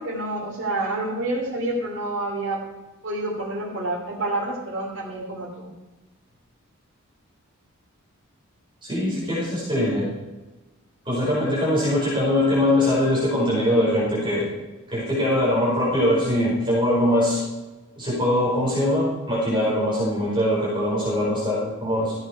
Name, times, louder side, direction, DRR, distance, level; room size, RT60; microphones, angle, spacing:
voice 1, 0.0-2.6 3.0-5.7, right 2 dB, 55° right, -4 dB, 2.8 m, -28 dB
voice 2, 8.8-10.1 11.0-14.5 14.9-17.4 18.0-22.1, left 1 dB, 20° right, -7 dB, 5.1 m, -22 dB
15.0 x 8.9 x 4.6 m, 1.1 s
head